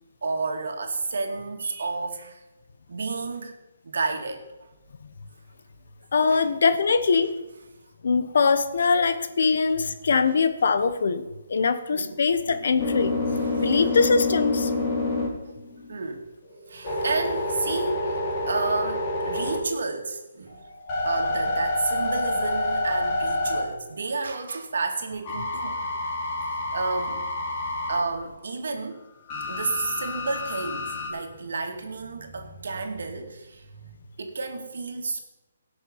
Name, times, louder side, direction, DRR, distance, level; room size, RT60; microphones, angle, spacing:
voice 1, 0.2-2.4 2.9-3.5 3.8-4.4 6.3-6.4 11.9-12.2 13.3-14.0 15.9-16.2 16.7-20.6 21.0-25.8 26.7-27.2 27.9-29.0 29.5-35.2, right 3 dB, 75° right, 4 dB, 2.2 m, -31 dB
voice 2, 6.1-7.3 8.0-11.2 11.5-13.1 13.6-14.7, left 5 dB, 65° left, 13 dB, 1.1 m, -22 dB
sound 1, 12.5-16.0 16.4-20.0 20.5-24.1 25.2-28.0 29.3-31.1, left 2 dB, 25° left, 3.1 m, -28 dB
17.5 x 6.3 x 5.5 m, 1.0 s
hypercardioid pair, 165°, 0 cm